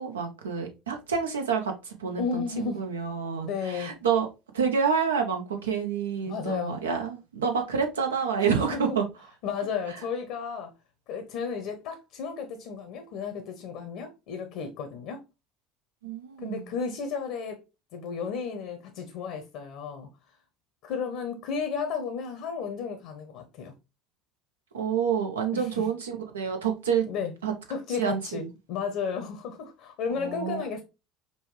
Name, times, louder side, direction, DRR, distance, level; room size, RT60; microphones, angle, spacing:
voice 1, 0.0-4.3 4.5-9.0 16.0-16.7 24.7-27.1 27.4-27.5 28.0-28.5 30.1-30.6, right 6 dB, 85° right, 0.7 m, -28 dB
voice 2, 2.2-2.8 3.4-4.0 6.3-6.8 8.4-9.0 9.4-10.7 11.1-15.2 16.4-17.6 17.9-20.1 20.8-23.7 25.5-25.8 27.1-27.3 27.7-30.8, left 5 dB, 65° left, 0.7 m, -33 dB
5.4 x 2.2 x 3.0 m
hypercardioid pair, 65°, 0 cm